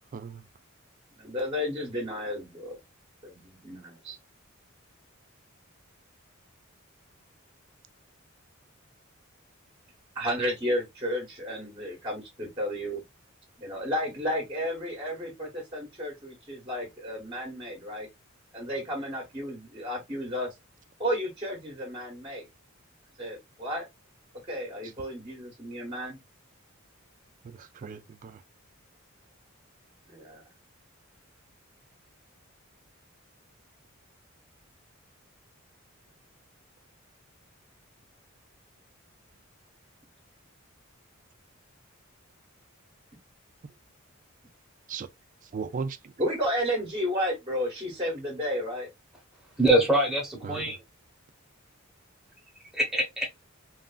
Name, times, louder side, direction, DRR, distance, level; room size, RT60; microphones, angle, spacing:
voice 1, 0.1-0.4 27.4-28.4 44.9-45.1 45.4-46.1 50.4-50.8, right 5 dB, 40° right, 0.3 m, -37 dB
voice 2, 1.2-2.8 3.2-4.2 10.1-13.0 13.6-18.1 18.5-20.5 21.0-22.5 23.2-23.9 24.5-26.2 30.1-30.4 46.2-48.9, equal, 25° right, 0.8 m, -32 dB
voice 3, 49.6-50.8 52.7-53.4, right 1 dB, ahead, 0.9 m, -24 dB
3.0 x 2.4 x 2.2 m
head